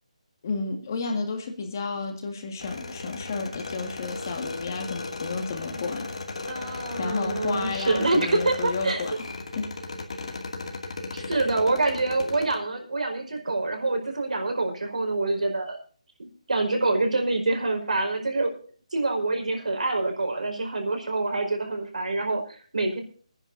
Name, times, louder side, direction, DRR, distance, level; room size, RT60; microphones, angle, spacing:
voice 1, 0.4-6.1 6.6-9.1 9.5-9.7 11.2-11.4, left 4 dB, 30° left, 4 dB, 1.9 m, -32 dB
sound 1, 2.6-12.6, left 3 dB, 55° left, 2.4 m, -36 dB
voice 2, 6.5-9.0 11.1-15.8 16.2-18.5 18.9-23.0, right 2 dB, 80° right, 3 dB, 4.8 m, -26 dB
26.0 x 10.0 x 2.7 m, 0.42 s
hypercardioid pair, 175°, 4 cm